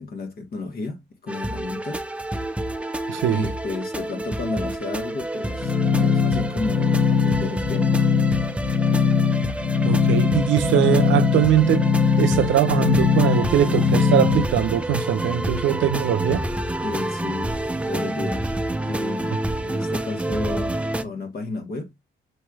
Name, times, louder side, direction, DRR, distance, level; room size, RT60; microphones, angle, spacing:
voice 1, 0.0-2.0 3.3-8.0 16.8-17.6 17.9-18.5 18.8-20.7 21.0-21.9, left 3 dB, 50° left, 1.3 m, -32 dB
sound 1, 1.3-21.0, right 1 dB, 5° right, 0.4 m, -29 dB
voice 2, 3.1-3.4 9.8-16.4, right 10 dB, 75° right, 0.6 m, -21 dB
sound 2, 5.6-14.4, left 6 dB, 30° left, 0.8 m, -21 dB
6.3 x 3.1 x 2.3 m
cardioid pair, 90°, 20 cm